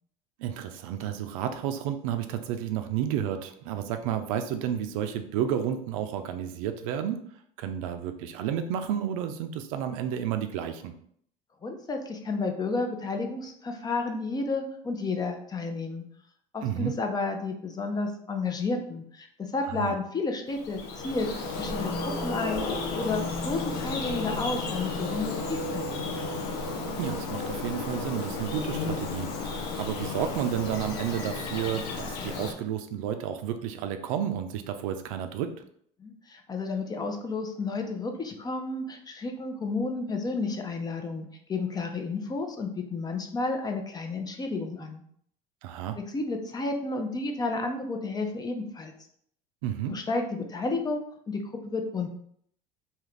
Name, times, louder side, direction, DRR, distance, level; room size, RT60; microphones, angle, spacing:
voice 1, 0.4-7.2 7.6-10.9 16.6-16.9 19.6-20.0 27.0-35.5 45.6-46.0 49.6-50.0, right 9 dB, 85° right, 8 dB, 0.4 m, -31 dB
voice 2, 11.6-16.0 16.5-21.3 21.6-22.7 22.9-25.8 26.1-26.3 36.0-45.0 46.1-48.9 49.9-52.1, left 3 dB, 25° left, 4 dB, 0.5 m, -31 dB
Bird vocalization bird call bird song, 20.5-32.5, left 3 dB, 70° left, 0.6 m, -33 dB
2.8 x 2.4 x 3.3 m, 0.64 s
supercardioid pair, 100°, 17 cm